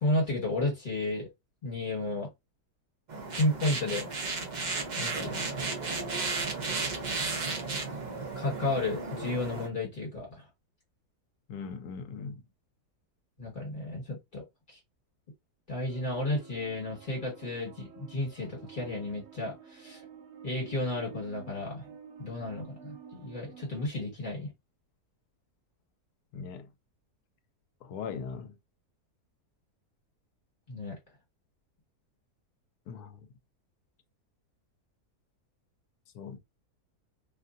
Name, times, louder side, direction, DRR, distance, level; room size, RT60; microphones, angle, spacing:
voice 1, 0.0-1.3 1.6-2.3 3.4-4.1 5.0-5.5 8.3-10.4 13.4-14.8 15.7-20.0 20.4-21.9 22.2-24.5 30.7-31.0, left 2 dB, 30° left, 1.7 m, -32 dB
sound 1, 3.1-9.7, right 3 dB, 55° right, 0.5 m, -34 dB
voice 2, 11.5-12.4 26.3-26.7 27.8-28.6 32.9-33.3 36.1-36.4, left 6 dB, 80° left, 1.1 m, -40 dB
sound 2, 15.8-23.9, right 7 dB, 70° right, 1.1 m, -50 dB
2.8 x 2.5 x 2.5 m
omnidirectional pair, 1.7 m